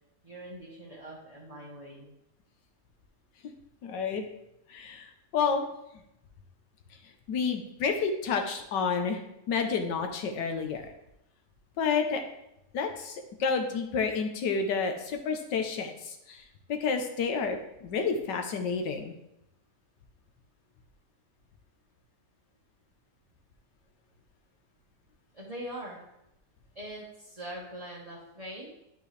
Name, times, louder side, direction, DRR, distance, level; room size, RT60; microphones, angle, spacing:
voice 1, 0.2-2.1 25.3-26.0 26.7-28.7, right 1 dB, 25° right, -5 dB, 1.1 m, -42 dB
voice 2, 3.8-4.2 4.7-5.7 7.3-9.2 9.5-10.9 11.8-12.2 12.7-16.4 16.7-19.1, left 5 dB, 90° left, 5 dB, 1.5 m, -30 dB
10.5 x 4.5 x 3.3 m, 0.85 s
omnidirectional pair, 1.8 m